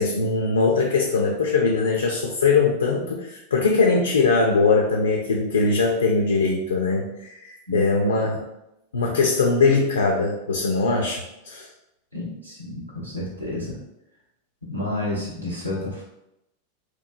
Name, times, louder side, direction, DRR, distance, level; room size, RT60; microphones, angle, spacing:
voice 1, 0.0-8.5 8.9-11.7, left 4 dB, 70° left, 0 dB, 0.3 m, -21 dB
voice 2, 12.1-13.8 14.6-16.0, left 1 dB, 85° right, -4 dB, 0.8 m, -30 dB
3.0 x 2.1 x 2.5 m, 0.87 s
figure-of-eight pair, 90°, 0 cm